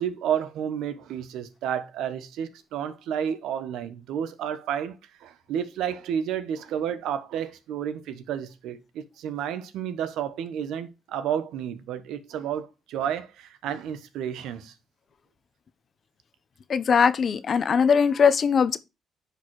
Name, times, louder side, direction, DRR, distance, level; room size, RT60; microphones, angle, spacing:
voice 1, 0.0-14.7, right 9 dB, 85° right, 1.1 m, -31 dB
voice 2, 16.7-18.8, left 6 dB, 50° left, 0.8 m, -20 dB
10.5 x 5.2 x 4.8 m
cardioid pair, 90°, 0 cm